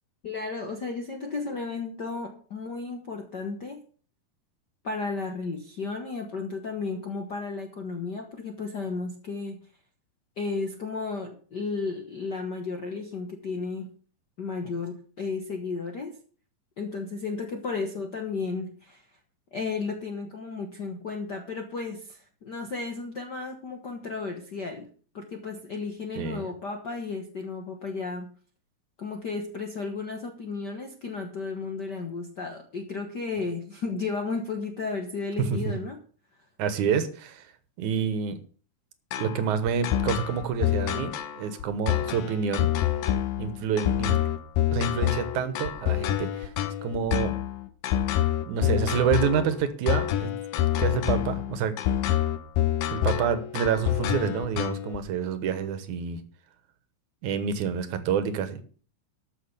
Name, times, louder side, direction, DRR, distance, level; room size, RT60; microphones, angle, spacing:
voice 1, 0.2-3.8 4.8-9.6 10.4-13.9 14.4-16.2 16.8-19.1 19.5-24.9 25.1-28.3 29.0-36.0, left 4 dB, 65° left, 4 dB, 1.0 m, -33 dB
voice 2, 36.6-37.4 37.8-38.4 39.2-42.7 43.4-44.2 44.7-46.5 46.8-47.3 48.5-50.3 50.8-51.8 52.9-56.2 57.2-58.6, right 7 dB, 65° right, 11 dB, 2.5 m, -28 dB
sound 1, 39.1-55.0, left 12 dB, 90° left, 2.7 m, -27 dB
13.0 x 6.3 x 6.7 m, 0.42 s
omnidirectional pair, 3.9 m